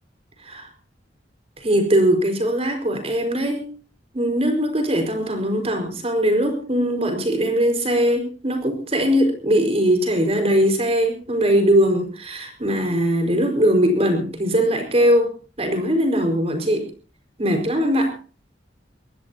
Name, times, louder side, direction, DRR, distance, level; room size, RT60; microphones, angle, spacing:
voice 1, 1.6-3.6 4.1-16.9 17.4-18.1, equal, 35° right, 5 dB, 5.0 m, -20 dB
23.5 x 18.5 x 2.9 m, 0.37 s
head